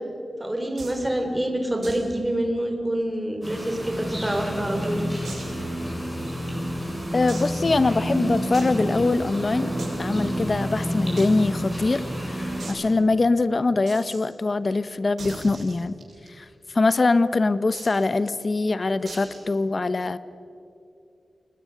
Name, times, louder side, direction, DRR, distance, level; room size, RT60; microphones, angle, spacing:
voice 1, 0.4-5.0, right 1 dB, 10° right, 4 dB, 2.9 m, -26 dB
sound 1, 0.8-1.1 1.8-2.1 2.4-2.5 2.9-3.0 3.6-4.4 5.2-5.6 6.2-6.3 7.3-7.8 8.5-8.8 9.8-10.2 11.2-11.3 11.6-11.7 11.9-12.0 12.6-12.8 13.9-14.2 15.2-16.3 17.7-18.1 19.1-19.4, right 3 dB, 80° right, 6.6 m, -40 dB
sound 2, 3.4-12.7, equal, 5° left, 7.4 m, -29 dB
voice 2, 7.1-9.7 10.0-16.0 16.4-20.2, left 3 dB, 40° left, 14 dB, 0.8 m, -23 dB
30.0 x 20.0 x 6.7 m, 2.6 s
wide cardioid pair, 125°, 0 cm